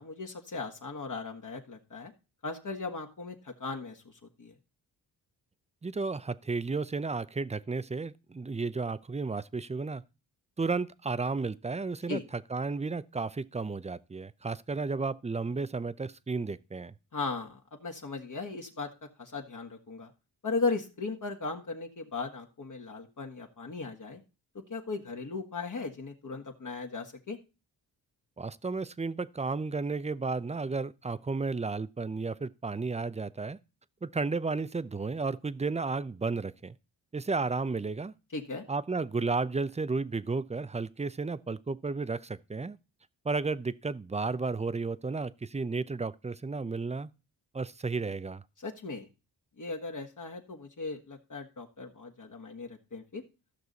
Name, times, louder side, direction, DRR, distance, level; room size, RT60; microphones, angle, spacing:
voice 1, 0.0-2.1 2.4-4.0 4.4-4.5 12.1-12.2 17.1-18.9 19.2-20.1 20.4-24.2 24.7-27.4 38.3-38.6 48.6-49.1 49.6-53.2, left 3 dB, 45° left, 1.8 m, -37 dB
voice 2, 5.8-10.0 10.6-16.9 28.4-33.6 34.0-36.7 37.1-38.1 38.7-42.8 43.2-47.1 47.5-48.4, right 4 dB, 15° right, 0.6 m, -33 dB
14.5 x 6.2 x 4.1 m
cardioid pair, 55°, 44 cm